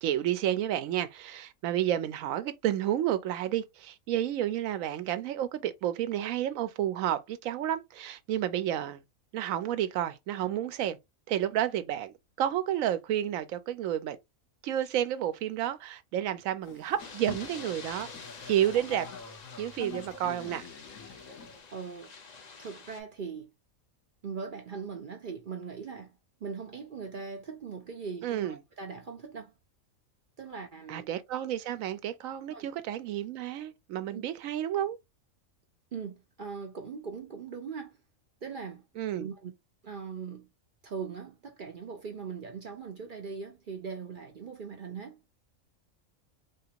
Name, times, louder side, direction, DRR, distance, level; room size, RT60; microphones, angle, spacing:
voice 1, 0.0-9.0 9.3-11.0 11.3-14.2 14.6-18.1 18.5-19.1 19.6-20.6 28.2-28.6 30.9-35.0 39.0-39.3, right 11 dB, 75° right, 1.0 m, -31 dB
Boat Water vehicle, 16.6-21.6, left 5 dB, 75° left, 1.3 m, -46 dB
sound 1, 17.0-23.0, left 5 dB, 45° left, 0.6 m, -48 dB
voice 2, 21.7-22.1 22.6-23.5 24.2-26.1 26.4-29.5 30.4-31.1 32.5-32.7 34.1-34.2 35.9-38.0 38.4-38.8 39.1-39.5 39.8-40.5 40.8-45.2, right 5 dB, 50° right, 0.6 m, -40 dB
3.5 x 2.5 x 2.8 m
omnidirectional pair, 1.4 m